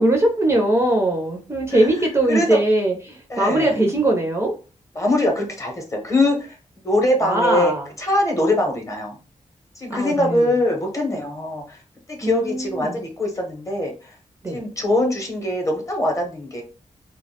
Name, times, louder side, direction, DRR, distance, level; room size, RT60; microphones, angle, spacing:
voice 1, 0.0-4.5 7.2-7.9 9.9-10.5 12.2-13.0 14.4-14.6, right 1 dB, 20° right, 0 dB, 0.4 m, -21 dB
voice 2, 2.3-2.6 3.3-3.8 4.9-6.5 6.8-7.7 8.0-9.1 9.8-11.8 12.1-14.1 14.5-16.6, left 1 dB, 25° left, 1 dB, 0.7 m, -22 dB
2.3 x 2.0 x 2.7 m, 0.35 s
wide cardioid pair, 115°, 13 cm